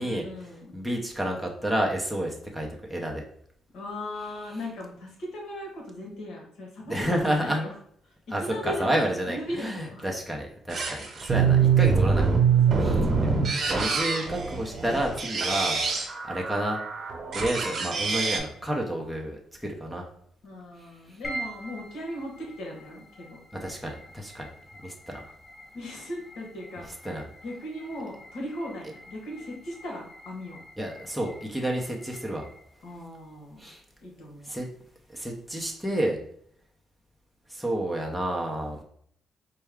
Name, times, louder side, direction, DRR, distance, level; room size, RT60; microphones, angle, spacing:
voice 1, 0.0-0.7 3.7-7.7 8.0-10.1 11.9-12.1 12.7-13.3 20.4-23.4 25.7-26.9 27.4-30.6 32.8-33.6 34.0-34.5, left 1 dB, 80° left, -1 dB, 1.4 m, -38 dB
voice 2, 0.7-3.2 6.8-7.6 8.3-13.1 13.7-15.8 16.2-16.8 17.3-20.1 21.1-21.2 23.6-24.5 24.8-25.3 27.0-27.2 30.8-32.5 33.6-33.8 34.4-34.7 35.1-36.2 37.5-38.8, right 1 dB, ahead, 0 dB, 0.7 m, -30 dB
sound 1, 10.7-18.4, right 6 dB, 50° right, 1.1 m, -24 dB
sound 2, 21.2-35.7, right 1 dB, 35° left, 1.0 m, -46 dB
4.4 x 2.2 x 3.5 m, 0.64 s
cardioid pair, 90°, 0 cm